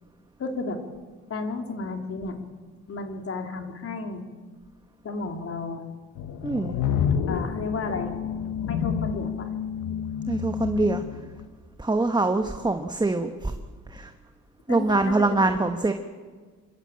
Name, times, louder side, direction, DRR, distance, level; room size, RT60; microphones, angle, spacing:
voice 1, 0.4-0.8 1.3-2.4 2.9-4.3 5.0-5.8 7.3-8.2 8.7-9.5 14.7-15.5, left 3 dB, 50° left, 5 dB, 3.0 m, -32 dB
sound 1, 6.2-11.5, left 7 dB, 85° left, 1.3 m, -29 dB
voice 2, 6.4-6.8 10.3-11.0 11.8-13.5 13.9-14.1 14.7-15.9, right 2 dB, 15° right, 7 dB, 1.2 m, -24 dB
27.0 x 13.0 x 8.8 m, 1.5 s
cardioid pair, 90°, 30 cm